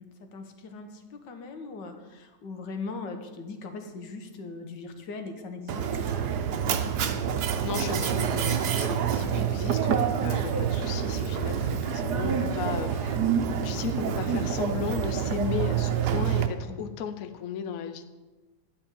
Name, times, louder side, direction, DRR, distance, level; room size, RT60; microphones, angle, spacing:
voice 1, 0.0-6.5 16.7-16.9, left 3 dB, 85° left, 5 dB, 1.8 m, -40 dB
Mechanisms, 5.7-16.5, right 8 dB, 70° right, 1.3 m, -27 dB
voice 2, 7.6-13.2 13.6-18.1, left 8 dB, 60° left, 8 dB, 1.0 m, -35 dB
12.0 x 5.2 x 8.8 m, 1.3 s
omnidirectional pair, 1.9 m